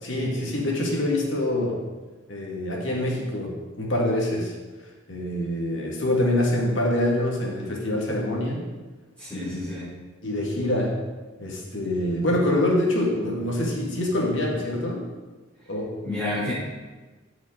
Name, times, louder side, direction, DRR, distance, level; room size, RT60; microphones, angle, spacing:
voice 1, 0.0-1.8 2.3-4.5 5.1-8.6 9.3-9.6 10.2-11.0 11.4-15.0 15.7-15.9, left 1 dB, 70° left, -2 dB, 2.5 m, -25 dB
voice 2, 9.2-9.9 16.0-16.5, left 1 dB, 10° left, -10 dB, 3.1 m, -30 dB
14.0 x 6.3 x 4.1 m, 1.3 s
head